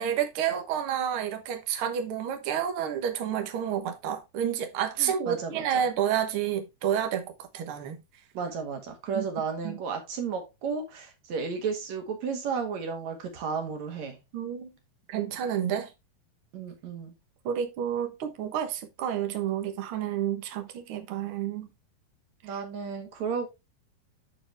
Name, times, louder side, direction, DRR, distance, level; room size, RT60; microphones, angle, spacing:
voice 1, 0.0-8.0 9.1-9.2 9.6-9.8 14.3-14.7 15.1-15.9 17.4-21.7, right 9 dB, 85° right, 1.1 m, -30 dB
voice 2, 5.0-5.7 8.3-14.2 16.5-17.1 22.4-23.5, right 5 dB, 55° right, 2.7 m, -33 dB
10.5 x 4.5 x 3.3 m
omnidirectional pair, 4.2 m